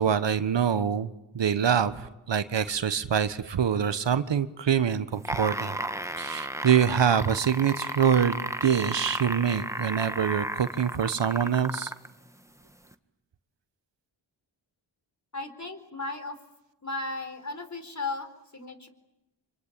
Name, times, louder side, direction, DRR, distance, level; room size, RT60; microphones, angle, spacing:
voice 1, 0.0-5.8 6.2-11.9, right 8 dB, 60° right, 13 dB, 1.3 m, -25 dB
sound 1, 5.1-12.1 12.9-13.0, right 1 dB, 5° right, 1.5 m, -33 dB
voice 2, 15.3-16.4 16.8-18.9, left 3 dB, 35° left, 10 dB, 4.4 m, -35 dB
26.5 x 24.0 x 9.0 m, 0.92 s
cardioid pair, 45°, 49 cm